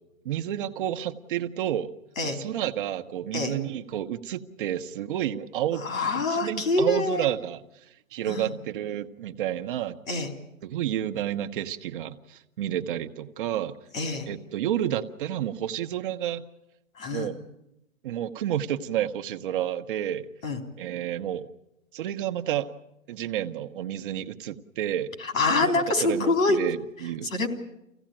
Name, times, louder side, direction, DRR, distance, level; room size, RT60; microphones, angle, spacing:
voice 1, 0.2-1.9 2.2-5.9 6.1-7.6 8.1-10.0 10.6-13.7 14.3-16.4 17.1-17.4 18.0-20.3 20.8-21.5 21.9-22.7 23.1-25.1 25.6-27.3, right 11 dB, 40° right, 8 dB, 1.0 m, -30 dB
voice 2, 5.8-7.3 8.3-8.5 10.1-10.3 13.9-14.3 17.0-17.3 20.4-20.6 25.2-26.6 27.2-27.5, left 3 dB, 80° left, 6 dB, 3.6 m, -25 dB
25.0 x 16.0 x 8.9 m, 0.88 s
hypercardioid pair, 145°, 40 cm